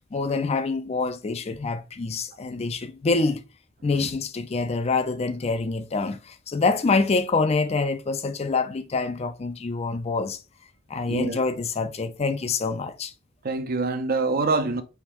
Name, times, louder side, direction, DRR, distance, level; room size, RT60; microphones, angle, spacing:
voice 1, 0.1-3.4 3.8-10.4 10.9-13.1, left 3 dB, 30° left, 0.4 m, -26 dB
voice 2, 11.1-11.4 13.4-14.8, right 3 dB, 50° right, 0.6 m, -26 dB
4.6 x 3.5 x 2.9 m
head